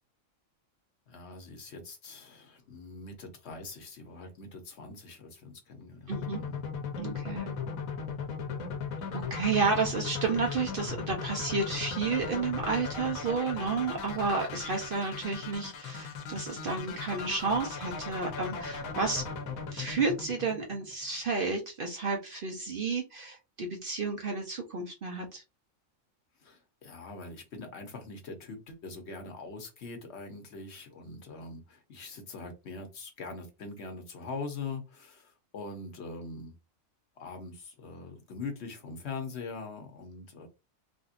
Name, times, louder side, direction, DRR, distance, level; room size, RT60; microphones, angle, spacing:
voice 1, 1.1-6.6 26.4-36.5 37.2-40.5, left 3 dB, 60° left, 1.0 m, -42 dB
sound 1, 6.1-21.0, left 5 dB, 85° left, 1.1 m, -37 dB
voice 2, 6.1-6.4 7.0-7.6 9.1-19.2 19.7-25.4, right 4 dB, 50° right, 0.7 m, -31 dB
3.4 x 2.7 x 2.5 m
omnidirectional pair, 1.4 m